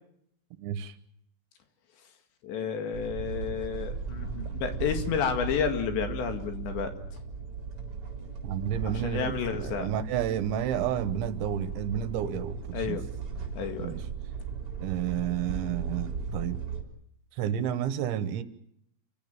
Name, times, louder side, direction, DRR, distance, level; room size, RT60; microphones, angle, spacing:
voice 1, 0.6-1.0 8.4-13.0 13.8-14.1 14.8-16.6 17.3-18.4, right 10 dB, 75° right, 12 dB, 3.3 m, -31 dB
voice 2, 2.4-6.9 8.9-9.9 12.7-13.0 13.6-13.9, left 7 dB, 65° left, 7 dB, 4.2 m, -31 dB
sound 1, 2.9-16.8, right 6 dB, 30° right, 4.2 m, -37 dB
28.0 x 15.5 x 9.0 m, 0.71 s
omnidirectional pair, 5.6 m